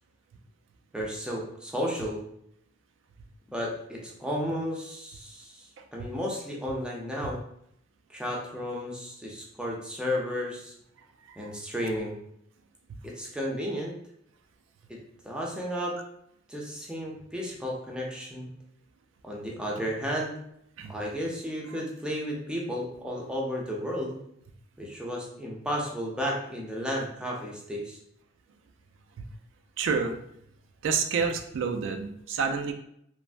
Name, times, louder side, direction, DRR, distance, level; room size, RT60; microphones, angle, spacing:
voice 1, 0.9-2.2 3.5-7.4 8.1-10.7 11.4-12.2 13.0-13.9 14.9-15.0 15.2-16.0 16.5-18.5 19.2-20.4 20.9-24.2 24.8-28.0, equal, 5° right, -3 dB, 0.5 m, -33 dB
voice 2, 5.8-6.1 7.2-7.3 11.3-11.5 20.8-20.9 29.2-29.3 29.8-30.2 30.8-32.7, right 5 dB, 80° right, 5 dB, 0.3 m, -29 dB
3.2 x 2.0 x 2.4 m, 0.72 s
head